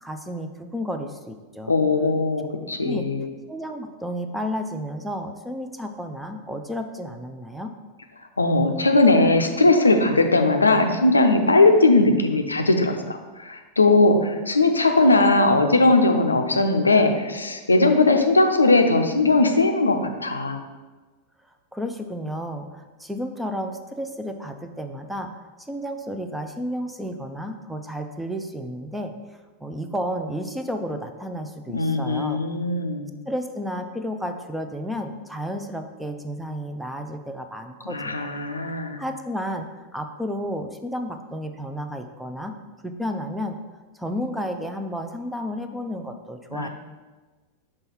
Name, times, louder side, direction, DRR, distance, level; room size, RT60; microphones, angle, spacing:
voice 1, 0.0-1.7 2.8-3.1 3.5-7.7 21.7-25.3 25.7-29.1 29.6-32.4 33.3-38.3 39.0-42.6 42.8-43.6 43.9-46.7, equal, 5° right, 5 dB, 0.5 m, -32 dB
voice 2, 1.7-3.2 8.4-20.6 31.7-33.1 37.9-39.0 46.5-46.7, left 2 dB, 80° left, 5 dB, 0.5 m, -19 dB
5.4 x 3.5 x 5.6 m, 1.3 s
figure-of-eight pair, 90°, 0 cm